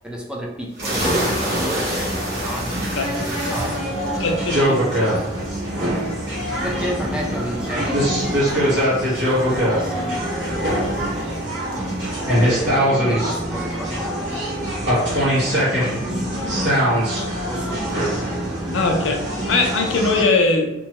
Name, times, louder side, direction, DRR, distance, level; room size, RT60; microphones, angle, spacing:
voice 1, 0.0-2.7 3.3-4.6 6.6-10.7 11.0-11.1 11.8-12.1 12.4-14.4 15.0-15.3 15.8-18.3, equal, 5° right, -2 dB, 0.5 m, -33 dB
sound 1, 0.7-14.1, equal, 60° right, 0.9 m, -31 dB
sound 2, 0.8-20.2, equal, 75° right, 1.2 m, -23 dB
voice 2, 4.2-5.2 12.4-12.5 15.9-16.0 18.7-20.8, left 3 dB, 85° left, 3 dB, 0.5 m, -21 dB
2.9 x 2.2 x 2.8 m, 1.0 s
head